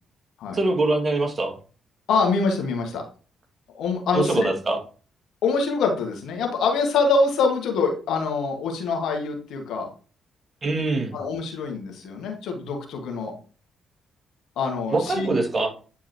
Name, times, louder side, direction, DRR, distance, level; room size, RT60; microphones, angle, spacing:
voice 1, 0.5-1.5 4.1-4.8 10.6-11.1 14.9-15.7, right 2 dB, 35° right, 2 dB, 2.1 m, -23 dB
voice 2, 2.1-3.0 3.7-4.5 5.4-9.9 11.1-13.3 14.5-15.3, left 4 dB, 65° left, 2 dB, 1.7 m, -24 dB
9.5 x 4.6 x 3.0 m, 0.38 s
hypercardioid pair, 45°, 0 cm